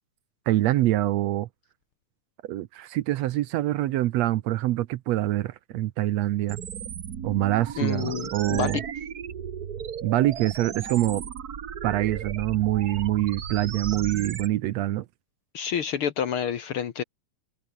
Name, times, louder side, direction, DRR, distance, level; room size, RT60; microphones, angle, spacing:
voice 1, 0.5-1.5 2.4-6.6 7.2-8.8 10.0-11.2 11.8-15.0, right 15 dB, 75° right, 1.8 m, -25 dB
sound 1, 6.5-14.5, right 8 dB, 50° right, 1.2 m, -35 dB
voice 2, 7.8-8.8 15.5-17.0, left 8 dB, 55° left, 1.8 m, -29 dB
omnidirectional pair, 3.3 m